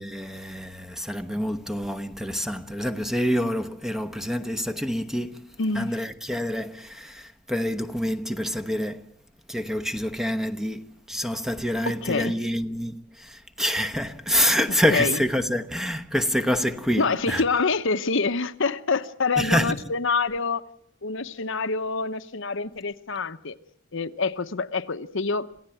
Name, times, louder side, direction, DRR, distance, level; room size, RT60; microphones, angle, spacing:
voice 1, 0.0-9.1 9.5-17.4 19.4-19.7, equal, ahead, 1.0 m, -27 dB
voice 2, 5.6-5.9 11.8-12.3 14.9-15.2 17.0-20.6 21.0-23.6 23.9-25.5, left 4 dB, 65° left, 1.0 m, -26 dB
27.5 x 16.5 x 9.2 m
head